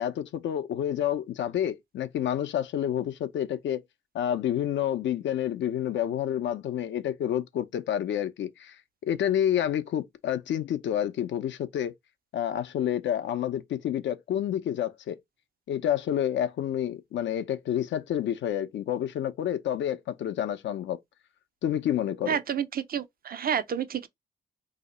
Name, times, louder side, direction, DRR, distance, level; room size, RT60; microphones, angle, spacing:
voice 1, 0.0-3.8 4.1-8.8 9.0-11.9 12.3-15.2 15.7-21.0 21.6-22.4, left 10 dB, 65° left, 0.6 m, -29 dB
voice 2, 22.3-24.1, right 8 dB, 50° right, 0.6 m, -29 dB
2.8 x 2.1 x 4.0 m
hypercardioid pair, 45°, 20 cm